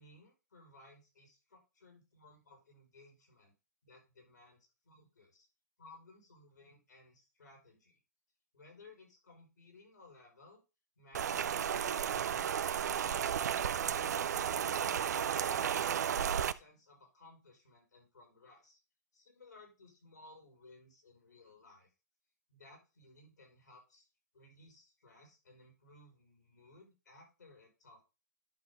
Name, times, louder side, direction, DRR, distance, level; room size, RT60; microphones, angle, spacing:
voice 1, 0.0-3.5 3.8-5.5 5.8-7.9 8.5-10.6 11.0-14.7 15.1-18.8 19.1-21.9 22.5-24.1 24.3-28.0, left 2 dB, 90° left, 2 dB, 5.0 m, -60 dB
Rain, 11.1-16.5, right 8 dB, 70° right, 0.6 m, -33 dB
11.0 x 5.5 x 3.6 m, 0.28 s
hypercardioid pair, 125°, 9 cm